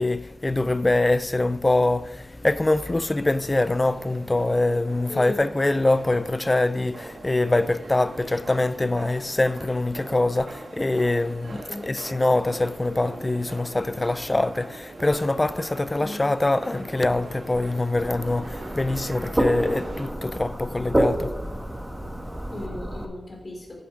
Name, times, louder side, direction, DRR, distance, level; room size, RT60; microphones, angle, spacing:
voice 1, 0.0-21.5 22.0-22.6, left 2 dB, 25° left, 0.5 m, -24 dB
sound 1, 2.8-20.1, right 2 dB, 75° right, 2.0 m, -42 dB
voice 2, 5.1-5.5 11.7-12.0 16.0-16.2 22.5-23.8, left 2 dB, 50° left, 3.2 m, -36 dB
sound 2, 18.0-23.0, right 1 dB, 15° right, 1.5 m, -28 dB
14.0 x 7.8 x 5.0 m
wide cardioid pair, 70°, 0 cm